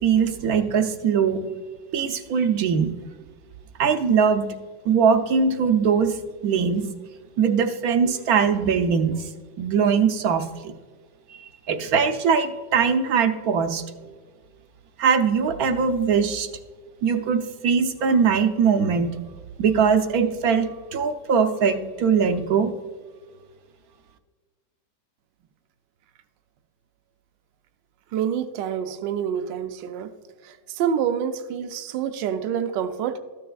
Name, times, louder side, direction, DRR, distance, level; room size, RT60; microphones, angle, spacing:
voice 1, 0.0-1.4 1.9-2.9 3.8-4.5 4.8-6.9 7.4-9.2 9.6-10.7 11.3-14.1 15.0-16.5 17.0-19.1 19.6-22.7, right 6 dB, 65° right, 7 dB, 1.1 m, -21 dB
voice 2, 28.1-30.1 30.4-33.2, right 8 dB, 85° right, 8 dB, 1.3 m, -27 dB
13.0 x 6.7 x 2.3 m, 1.5 s
omnidirectional pair, 1.9 m